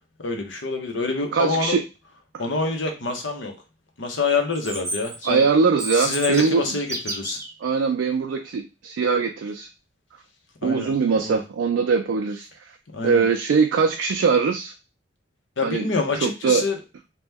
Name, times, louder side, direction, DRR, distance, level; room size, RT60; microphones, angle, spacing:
voice 1, 0.2-1.8 2.4-3.5 4.0-5.4 5.9-7.4 10.6-10.9 11.2-11.4 12.9-13.2 15.6-16.8, left 3 dB, 75° left, 3 dB, 0.8 m, -26 dB
voice 2, 1.3-1.8 2.3-2.4 5.3-6.8 7.6-9.7 10.6-12.5 13.0-14.7 15.6-15.9 16.2-16.6, right 5 dB, 90° right, 5 dB, 0.3 m, -21 dB
Chirp tweet, 4.5-7.5, right 1 dB, 15° right, 0.6 m, -32 dB
2.9 x 2.1 x 3.4 m, 0.28 s
head